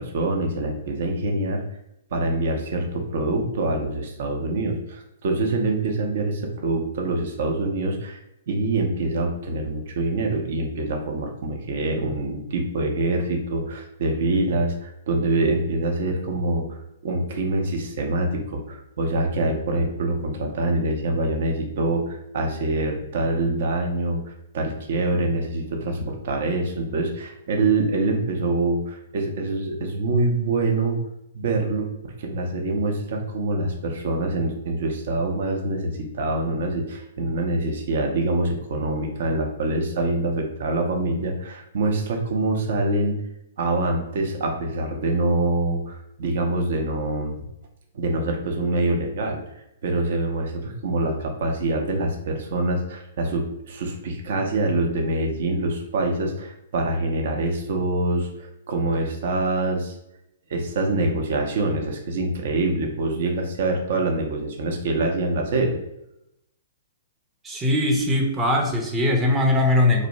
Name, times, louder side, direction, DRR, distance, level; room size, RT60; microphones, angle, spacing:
voice 1, 0.0-1.6 2.1-8.2 8.5-16.8 17.0-24.2 24.5-31.0 31.3-43.2 43.6-47.4 47.9-60.0 60.5-65.8, right 2 dB, 60° right, 2 dB, 0.6 m, -25 dB
voice 2, 67.4-70.1, left 1 dB, 15° right, 0 dB, 0.5 m, -20 dB
2.6 x 2.0 x 3.0 m, 0.83 s
hypercardioid pair, 120°, 0 cm